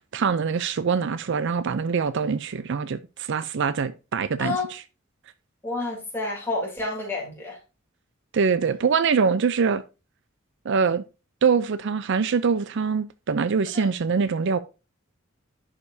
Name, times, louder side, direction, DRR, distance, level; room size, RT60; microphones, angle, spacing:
voice 1, 0.1-4.6 8.3-9.8 10.7-11.0 11.4-14.6, right 5 dB, 60° right, 0.5 m, -24 dB
voice 2, 4.4-4.7 5.6-7.6 13.7-13.9, left 3 dB, 10° left, 3.1 m, -29 dB
11.0 x 5.0 x 2.7 m
head